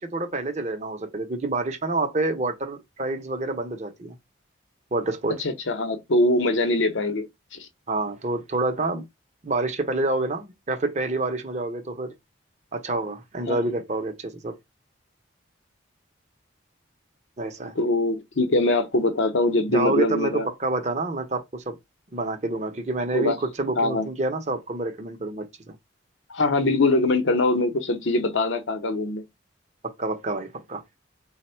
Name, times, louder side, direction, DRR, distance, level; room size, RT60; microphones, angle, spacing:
voice 1, 0.0-4.2 4.9-5.3 7.9-9.0 9.4-12.1 12.7-14.6 17.4-17.8 19.7-21.8 22.1-25.8 30.0-30.8, right 2 dB, 35° right, 0.6 m, -28 dB
voice 2, 5.4-7.3 7.5-7.7 13.5-13.7 17.8-20.5 23.1-23.4 23.8-24.1 26.3-29.2, left 2 dB, 75° left, 0.7 m, -23 dB
3.4 x 2.1 x 4.3 m
head